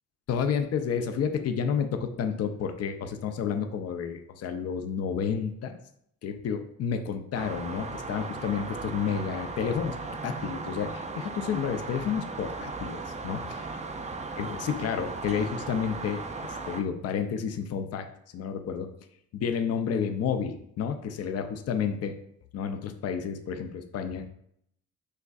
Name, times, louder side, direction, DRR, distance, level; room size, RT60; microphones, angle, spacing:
voice 1, 0.3-5.8 6.2-13.4 14.4-18.1 18.3-18.9 19.3-22.1 22.5-24.3, left 7 dB, 55° left, 7 dB, 0.5 m, -30 dB
sound 1, 7.3-16.8, right 3 dB, 25° right, 0.4 m, -37 dB
6.4 x 2.5 x 2.3 m, 0.71 s
cardioid pair, 90°, 30 cm